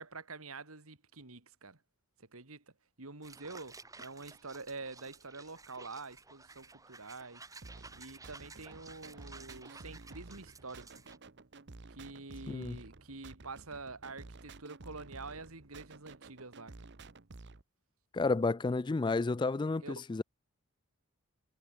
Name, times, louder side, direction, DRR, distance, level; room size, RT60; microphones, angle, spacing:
voice 1, 0.0-1.8 2.2-2.6 3.0-7.5 7.9-11.0 11.9-16.9 19.8-19.9, right 3 dB, 80° right, 2.9 m, -47 dB
sound 1, 3.2-11.2, right 4 dB, 15° right, 1.7 m, -54 dB
sound 2, 7.6-17.6, right 3 dB, 50° right, 1.1 m, -52 dB
voice 2, 12.5-12.8 18.1-20.2, left 3 dB, 20° left, 0.3 m, -31 dB
head